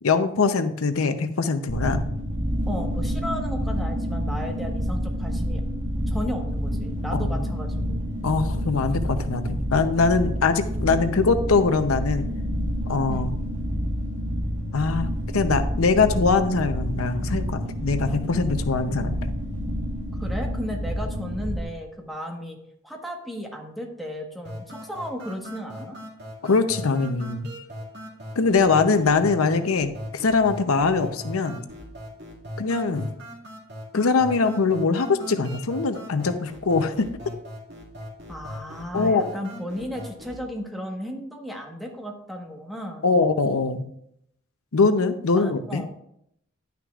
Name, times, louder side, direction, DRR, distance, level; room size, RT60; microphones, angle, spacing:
voice 1, 0.0-2.0 7.1-7.4 8.2-12.3 12.9-13.3 14.7-19.3 26.4-27.5 28.4-31.6 32.6-33.1 33.9-37.1 38.9-39.3 43.0-43.8 44.7-45.8, left 4 dB, 80° left, 9 dB, 0.7 m, -22 dB
sound 1, 1.7-21.6, equal, 35° right, 1.5 m, -28 dB
voice 2, 2.7-5.6 6.1-8.0 13.1-13.3 20.2-22.6 22.8-26.0 38.3-43.1 45.4-45.9, equal, ahead, 0 dB, 1.3 m, -34 dB
sound 2, 24.4-40.4, equal, 55° right, 2.1 m, -39 dB
11.0 x 9.3 x 2.4 m, 0.73 s
head